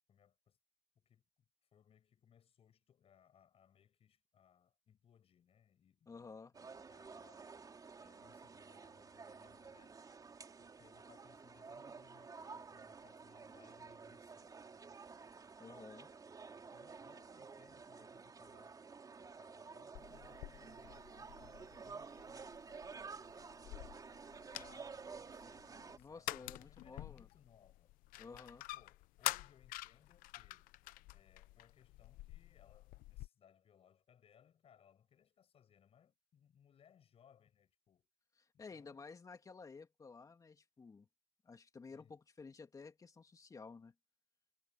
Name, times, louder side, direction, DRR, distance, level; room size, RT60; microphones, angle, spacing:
voice 1, 0.1-0.6 0.9-1.3 1.7-7.5 8.0-10.0 10.6-14.6 16.7-18.8 19.2-22.6 23.3-23.6 24.5-27.9 28.3-30.7 31.1-38.1 38.5-39.0 41.9-42.2, left 8 dB, 40° left, 7.7 m, -68 dB
voice 2, 6.1-6.5 15.6-16.1 25.9-27.3 28.2-28.6 38.4-41.1 41.4-43.9, left 4 dB, 25° left, 2.9 m, -53 dB
sound 1, 6.5-26.0, right 5 dB, 25° right, 3.9 m, -52 dB
sound 2, 19.9-33.3, left 18 dB, 75° left, 0.9 m, -48 dB
cardioid pair, 115°, 15 cm